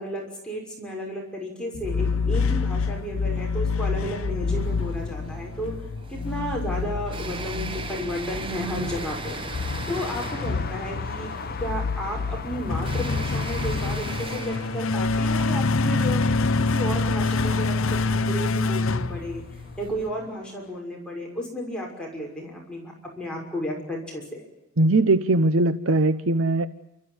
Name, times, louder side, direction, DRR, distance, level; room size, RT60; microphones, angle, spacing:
voice 1, 0.0-5.7 6.1-9.4 9.9-11.3 11.6-16.2 16.6-19.4 19.8-24.4, equal, 5° left, -2 dB, 6.2 m, -33 dB
sound 1, 1.7-19.9, left 3 dB, 70° left, 0.8 m, -27 dB
sound 2, 4.4-20.1, right 3 dB, 25° right, 1.3 m, -41 dB
sound 3, 7.6-20.8, left 4 dB, 45° left, 1.2 m, -41 dB
voice 2, 24.8-26.7, right 2 dB, 75° right, 13 dB, 1.0 m, -20 dB
30.0 x 14.5 x 9.7 m, 0.90 s
head